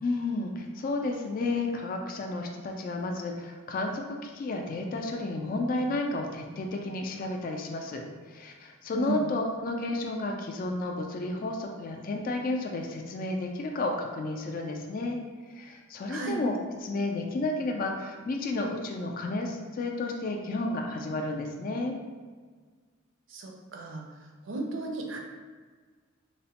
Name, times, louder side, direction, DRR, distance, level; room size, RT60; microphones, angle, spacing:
voice 1, 0.0-15.2 15.5-16.5 16.8-22.0, left 2 dB, 45° left, 2 dB, 0.3 m, -32 dB
voice 2, 8.9-9.2 16.1-16.4 23.3-24.0 24.4-25.2, right 2 dB, 70° right, 1 dB, 0.5 m, -34 dB
3.9 x 2.1 x 2.8 m, 1.5 s
head